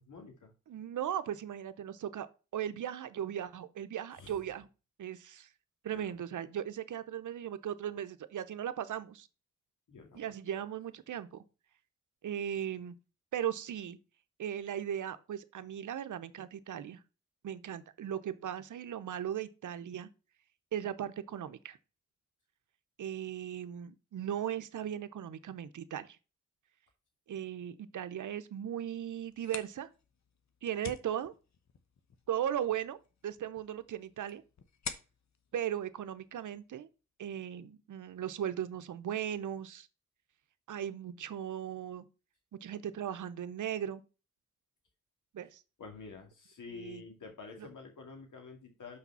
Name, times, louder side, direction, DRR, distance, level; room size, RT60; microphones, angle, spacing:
voice 1, 0.0-0.5 4.1-4.3 5.9-6.2 9.9-10.3 45.8-49.0, left 4 dB, 80° left, 2.3 m, -49 dB
voice 2, 0.7-2.3 2.5-4.7 5.0-5.5 5.8-9.3 10.1-11.4 12.2-12.9 13.3-14.0 14.4-17.0 17.4-20.1 20.7-21.8 23.0-26.2 27.3-29.9 30.6-31.3 32.3-34.4 35.5-36.9 37.2-39.9 40.7-42.0 42.6-44.0 45.3-45.6 46.7-47.0 47.6-47.7, right 10 dB, 75° right, 0.7 m, -37 dB
sound 1, 29.2-36.7, left 6 dB, 65° left, 1.0 m, -49 dB
5.9 x 4.9 x 5.5 m
cardioid pair, 45°, 30 cm